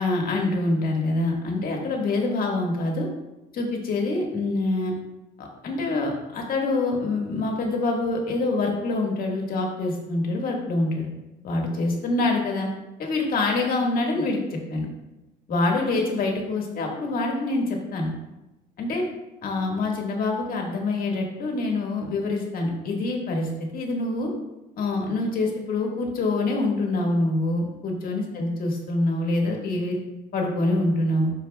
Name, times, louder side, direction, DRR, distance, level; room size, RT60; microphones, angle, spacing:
voice 1, 0.0-3.1 3.5-4.9 5.4-11.1 11.4-12.7 13.0-14.9 15.5-18.1 18.8-19.1 19.4-24.3 24.8-30.0 30.3-31.3, left 2 dB, 60° left, 0 dB, 1.7 m, -25 dB
11.5 x 4.7 x 2.3 m, 1.0 s
cardioid pair, 110°, 17 cm